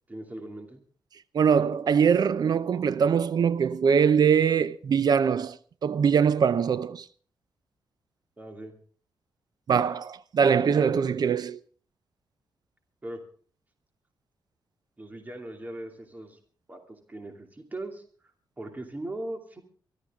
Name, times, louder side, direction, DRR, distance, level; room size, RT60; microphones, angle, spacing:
voice 1, 0.1-0.8 8.4-8.7 13.0-13.2 15.0-16.4 16.7-18.0 18.6-19.6, right 1 dB, 20° right, 2.6 m, -39 dB
voice 2, 1.3-5.6 5.8-7.1 9.7-11.6, right 7 dB, 60° right, 0.7 m, -22 dB
24.0 x 13.5 x 3.7 m
cardioid pair, 105°, 8 cm